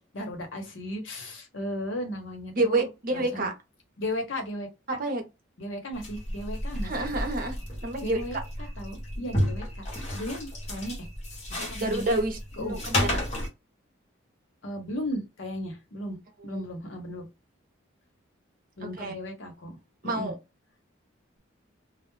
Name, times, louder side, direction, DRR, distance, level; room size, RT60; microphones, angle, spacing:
voice 1, 0.0-2.8 3.1-3.5 4.0-4.7 5.6-7.1 8.0-9.9 10.1-11.1 11.5-12.1 12.6-12.8 14.6-17.3 18.8-19.8 20.0-20.3, left 1 dB, 70° left, 0.8 m, -36 dB
voice 2, 2.5-3.5 5.0-5.2 6.8-7.6 7.8-8.4 11.8-13.2 16.5-16.6 19.0-19.1 20.0-20.4, right 2 dB, 45° right, 0.7 m, -28 dB
sound 1, 5.9-13.5, left 1 dB, 35° left, 0.8 m, -32 dB
2.2 x 2.0 x 3.0 m
head